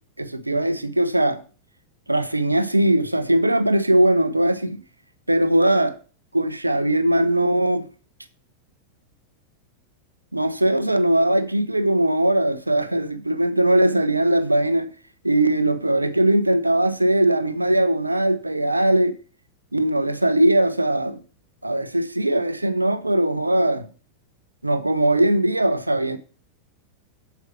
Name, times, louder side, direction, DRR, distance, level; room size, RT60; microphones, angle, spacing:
voice 1, 0.2-1.4 2.1-4.8 5.3-5.9 6.3-7.8 10.3-14.9 15.2-19.2 19.7-21.2 21.6-23.9 24.6-26.2, right 1 dB, 85° right, 0.8 m, -20 dB
8.1 x 7.1 x 5.9 m
figure-of-eight pair, 90°, 0 cm